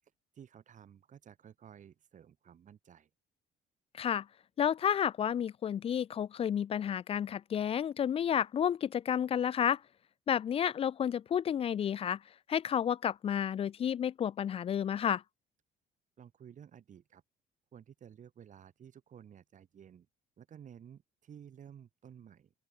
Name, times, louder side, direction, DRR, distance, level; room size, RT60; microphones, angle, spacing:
voice 1, 0.3-3.1 16.2-17.2 17.7-20.1 20.4-22.5, right 8 dB, 50° right, 6.1 m, -54 dB
voice 2, 3.9-4.3 4.6-9.8 10.3-12.2 12.5-15.2, left 9 dB, 35° left, 0.4 m, -31 dB
open air
cardioid pair, 110°, 17 cm